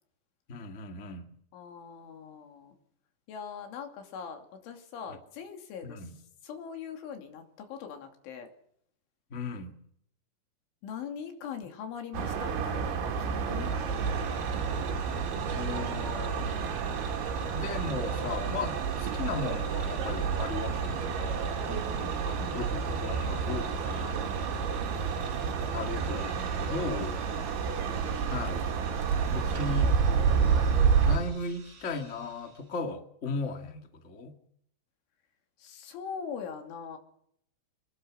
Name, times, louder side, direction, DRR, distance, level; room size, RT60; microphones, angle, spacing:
voice 1, 0.5-1.2 5.8-6.1 9.3-9.7 15.5-16.7 17.5-21.5 22.2-24.2 25.7-27.2 28.3-28.7 29.3-29.9 31.0-34.3, left 3 dB, 50° left, 5 dB, 0.8 m, -36 dB
voice 2, 1.5-2.8 3.3-6.1 6.4-8.5 10.8-14.3 18.4-18.6 21.7-22.5 24.2-24.5 25.8-26.0 26.9-27.1 35.6-37.0, left 7 dB, 85° left, 5 dB, 5.2 m, -42 dB
sound 1, 12.1-31.2, right 6 dB, 75° right, 4.8 m, -29 dB
sound 2, 13.0-32.7, right 2 dB, 35° right, 1.8 m, -49 dB
26.0 x 21.0 x 6.4 m, 0.71 s
omnidirectional pair, 5.4 m